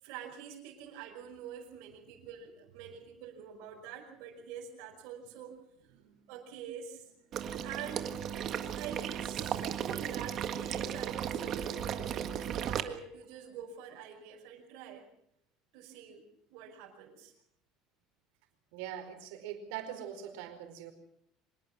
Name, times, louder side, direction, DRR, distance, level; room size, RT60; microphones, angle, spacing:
voice 1, 0.0-5.6 6.3-7.0 7.6-8.2 8.8-12.3 12.6-15.1 15.7-17.3, right 8 dB, 65° right, -3 dB, 5.6 m, -46 dB
voice 2, 5.9-6.3 7.3-7.4 18.7-20.9, right 10 dB, 85° right, 7 dB, 4.9 m, -43 dB
Water / Liquid, 7.3-12.8, right 9 dB, 35° right, 1.6 m, -35 dB
25.5 x 21.0 x 6.3 m, 0.76 s
cardioid pair, 170°, 0 cm